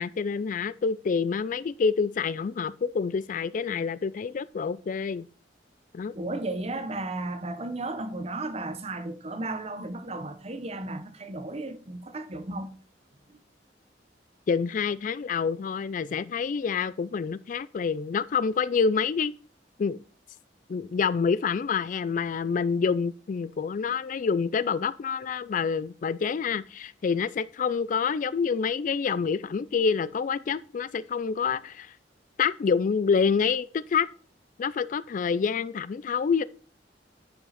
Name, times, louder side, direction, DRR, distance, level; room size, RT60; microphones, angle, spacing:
voice 1, 0.0-5.3 5.9-6.1 14.5-19.4 19.8-20.0 20.7-31.9 32.4-34.1 34.6-36.4, left 5 dB, 45° left, 0.3 m, -27 dB
voice 2, 6.1-12.7 13.3-13.4, right 2 dB, 35° right, 0.9 m, -34 dB
10.0 x 5.7 x 4.1 m
head